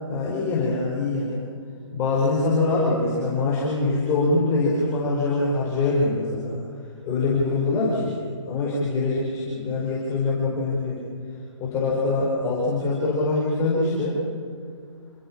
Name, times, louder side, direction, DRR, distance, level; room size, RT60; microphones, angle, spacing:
voice 1, 0.1-1.4 1.9-6.6 7.0-8.2 8.5-11.0 11.6-14.2, left 3 dB, 20° left, -6 dB, 5.0 m, -23 dB
28.0 x 16.0 x 7.5 m, 2.1 s
hypercardioid pair, 150°, 16 cm